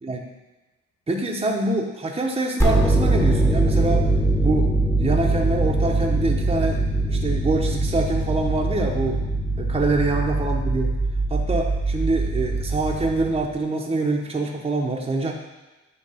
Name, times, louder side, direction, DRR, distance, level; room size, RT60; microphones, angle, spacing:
voice 1, 1.1-4.1 4.4-9.2 9.6-11.0 11.3-15.3, right 2 dB, 20° right, 0 dB, 1.1 m, -25 dB
sound 1, 2.6-13.6, right 2 dB, 10° left, 1.4 m, -22 dB
9.3 x 3.2 x 5.7 m, 1.1 s
cardioid pair, 90°, 30 cm